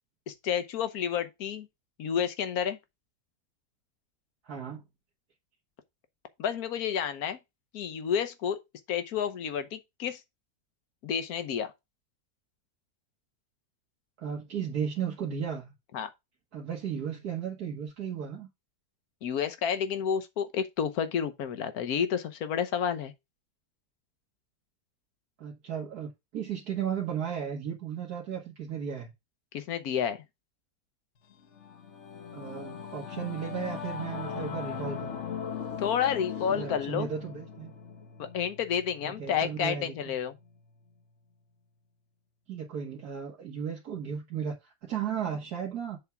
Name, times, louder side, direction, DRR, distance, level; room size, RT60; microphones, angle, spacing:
voice 1, 0.3-1.7 2.0-2.8 6.4-7.4 7.7-8.6 8.9-10.2 11.0-11.7 15.9-16.1 19.2-23.1 29.5-30.2 35.8-37.1 38.2-40.3, left 8 dB, 70° left, 1.4 m, -30 dB
voice 2, 4.4-4.8 14.2-15.7 16.5-18.5 25.4-29.1 32.3-35.2 36.6-37.7 39.0-39.9 42.5-46.0, right 8 dB, 75° right, 1.9 m, -35 dB
Singing / Musical instrument, 31.3-41.0, left 7 dB, 55° left, 1.1 m, -40 dB
7.2 x 3.5 x 5.8 m
omnidirectional pair, 1.7 m